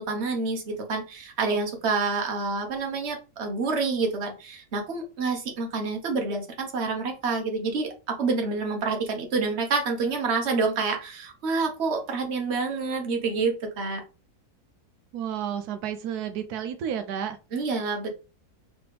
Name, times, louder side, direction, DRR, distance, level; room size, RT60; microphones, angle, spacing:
voice 1, 0.0-14.0 17.5-18.2, right 4 dB, 50° right, 3 dB, 1.3 m, -28 dB
voice 2, 15.1-17.4, right 9 dB, 90° right, 8 dB, 1.1 m, -31 dB
4.1 x 3.2 x 3.3 m, 0.31 s
omnidirectional pair, 1.6 m